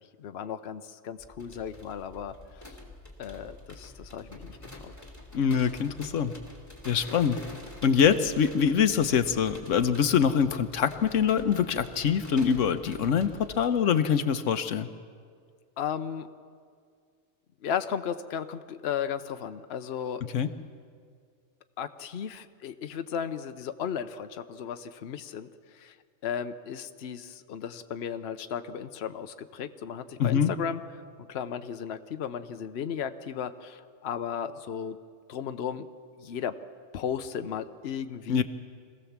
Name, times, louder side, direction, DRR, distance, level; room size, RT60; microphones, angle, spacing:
voice 1, 0.2-2.7 3.2-4.6 4.8-4.9 7.2-7.3 15.8-16.3 17.6-20.2 21.8-26.0 26.2-30.8 31.3-35.0 35.3-35.9 36.2-36.6 36.9-38.4, left 8 dB, 60° left, 9 dB, 1.0 m, -35 dB
sound 1, 1.2-13.7, left 1 dB, 15° left, 3.1 m, -47 dB
voice 2, 5.3-6.3 6.8-7.4 7.8-14.9 20.3-20.5 30.2-30.5 38.3-38.4, left 7 dB, 85° left, 10 dB, 1.2 m, -24 dB
25.0 x 16.5 x 7.3 m, 2.1 s
omnidirectional pair, 1.3 m